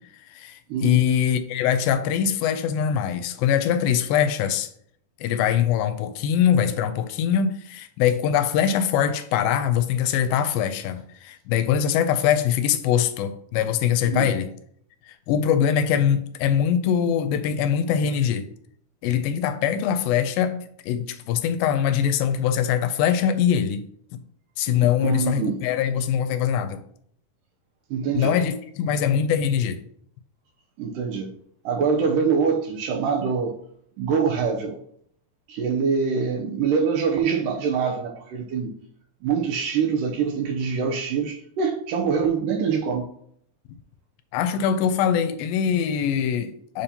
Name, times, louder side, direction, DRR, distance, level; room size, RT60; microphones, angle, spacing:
voice 1, 0.3-4.7 5.2-14.5 15.1-18.5 19.0-23.8 24.1-24.2 24.6-26.8 28.2-29.8 44.3-46.8, left 8 dB, 85° left, 10 dB, 2.3 m, -23 dB
voice 2, 25.0-25.6 27.9-28.4 30.8-31.3 31.6-33.6 34.0-34.8 35.5-38.7 39.2-43.1, right 6 dB, 80° right, 2 dB, 2.1 m, -24 dB
7.1 x 2.8 x 5.2 m, 0.66 s
omnidirectional pair, 4.2 m